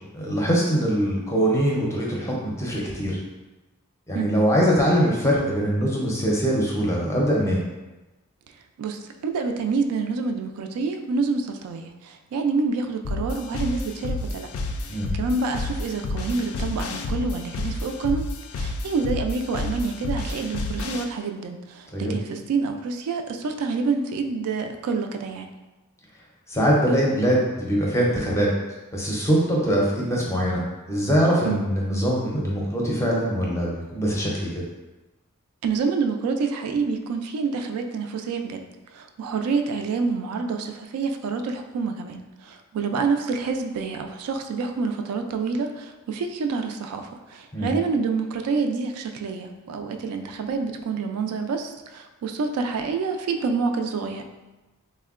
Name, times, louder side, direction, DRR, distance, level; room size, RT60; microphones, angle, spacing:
voice 1, 0.1-3.2 4.1-7.6 14.9-15.1 21.9-22.1 26.5-28.5 28.9-34.6 47.5-47.7, equal, 15° left, -3 dB, 0.5 m, -22 dB
voice 2, 4.1-4.4 8.8-14.5 15.1-18.3 18.5-25.5 31.4-31.7 35.6-38.6 38.9-54.2, right 4 dB, 85° right, 9 dB, 0.3 m, -27 dB
sound 1, 13.0-21.0, left 2 dB, 75° left, 0.3 m, -30 dB
3.5 x 2.1 x 2.3 m, 1.1 s
head